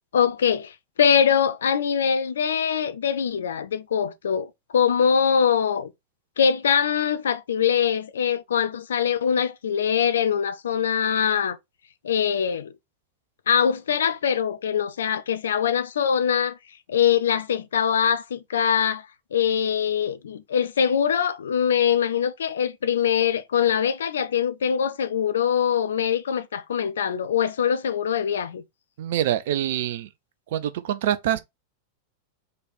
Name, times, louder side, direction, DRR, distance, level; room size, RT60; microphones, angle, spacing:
voice 1, 0.1-5.9 6.4-11.6 12.0-12.7 13.5-16.6 16.9-19.1 19.3-28.6, left 8 dB, 65° left, 0.7 m, -23 dB
voice 2, 29.0-30.1 30.5-31.4, right 11 dB, 55° right, 0.7 m, -25 dB
5.3 x 4.2 x 4.2 m
figure-of-eight pair, 90°, 0 cm